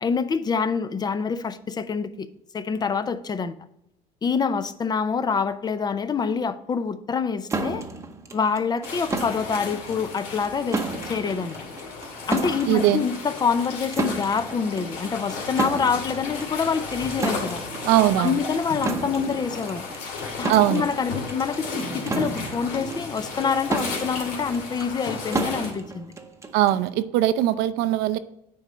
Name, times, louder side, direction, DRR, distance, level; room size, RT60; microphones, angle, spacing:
voice 1, 0.0-2.3 2.5-3.5 4.2-7.8 8.3-11.5 12.3-17.6 18.2-19.9 20.4-26.1, left 5 dB, 25° left, 0.5 m, -26 dB
sound 1, 7.5-26.9, right 3 dB, 15° right, 0.8 m, -33 dB
sound 2, 8.8-25.7, left 4 dB, 80° left, 2.7 m, -34 dB
voice 2, 12.7-13.0 17.8-18.4 20.5-20.8 26.5-28.2, right 13 dB, 80° right, 0.6 m, -20 dB
8.6 x 4.9 x 4.2 m
cardioid pair, 125°, 16 cm